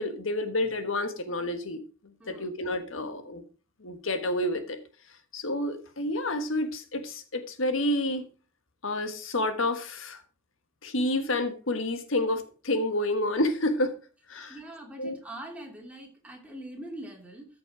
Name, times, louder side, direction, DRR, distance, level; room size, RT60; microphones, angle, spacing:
voice 1, 0.0-1.8 2.3-3.4 3.8-4.8 5.3-8.2 8.8-10.2 10.8-13.9 14.3-14.6 15.0-15.2, left 1 dB, 80° left, 9 dB, 1.4 m, -29 dB
voice 2, 2.2-2.5 14.5-17.5, right 1 dB, 5° right, 1 dB, 2.8 m, -43 dB
14.0 x 6.1 x 4.9 m, 0.35 s
head